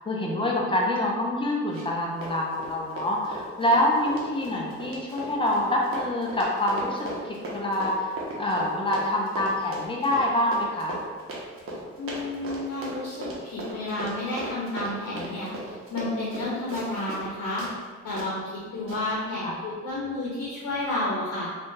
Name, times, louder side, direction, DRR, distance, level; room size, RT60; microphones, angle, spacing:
voice 1, 0.0-11.0 16.8-17.0 19.4-19.5, left 1 dB, 15° left, -2 dB, 0.7 m, -26 dB
Run, 1.7-17.3 17.6-17.7 18.2-18.3 18.9-19.0, right 1 dB, 45° right, 0.9 m, -37 dB
voice 2, 12.0-17.7 18.0-18.4 18.7-21.5, left 2 dB, 80° left, -6 dB, 0.8 m, -31 dB
3.4 x 2.5 x 2.7 m, 1.5 s
cardioid pair, 90°, 30 cm